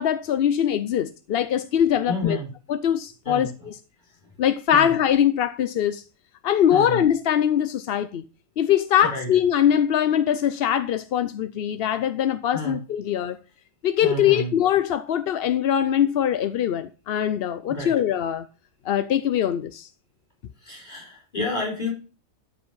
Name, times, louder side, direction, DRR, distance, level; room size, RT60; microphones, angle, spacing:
voice 1, 0.0-2.4 2.7-3.7 4.4-6.0 6.4-8.3 8.6-13.4 13.8-18.5 18.9-19.9, left 10 dB, 60° left, 0.7 m, -22 dB
voice 2, 2.1-2.5 3.2-3.5 4.7-4.9 6.7-7.0 9.0-9.3 12.5-12.8 14.0-14.5 17.7-17.9 20.6-21.9, left 1 dB, 30° left, 5.9 m, -30 dB
12.5 x 5.2 x 5.5 m
omnidirectional pair, 1.4 m